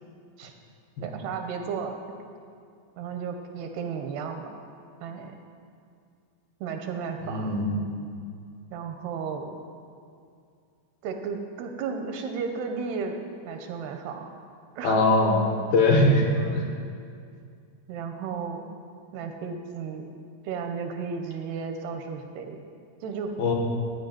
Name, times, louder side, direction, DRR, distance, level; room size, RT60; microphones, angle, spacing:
voice 1, 1.0-1.9 3.0-4.5 5.0-5.3 6.6-7.7 8.7-9.6 11.0-13.2 13.5-14.3 14.8-15.0 16.1-16.6 17.9-18.7 19.1-20.1 20.4-22.6 23.0-23.3, right 5 dB, 80° right, 5 dB, 2.6 m, -34 dB
voice 2, 7.2-7.8 14.8-15.4 15.7-16.2 16.5-16.6 23.4-23.5, left 2 dB, 65° left, 0 dB, 2.8 m, -21 dB
14.5 x 5.2 x 9.0 m, 2.3 s
omnidirectional pair, 5.0 m